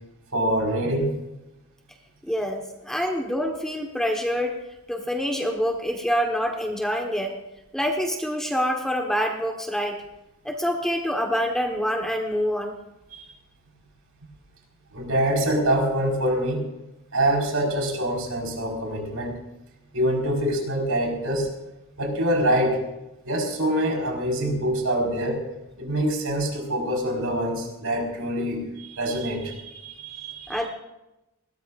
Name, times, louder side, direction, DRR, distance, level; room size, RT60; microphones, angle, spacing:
voice 1, 0.3-1.2 13.1-13.3 14.9-16.6 17.1-19.4 19.9-21.5 22.0-22.8 23.2-25.4 25.8-30.7, right 1 dB, 75° right, 0 dB, 4.9 m, -25 dB
voice 2, 2.2-4.5 4.9-7.3 7.7-10.0 10.4-12.8 30.5-30.7, equal, ahead, 2 dB, 1.3 m, -26 dB
21.0 x 18.5 x 2.6 m, 0.95 s
head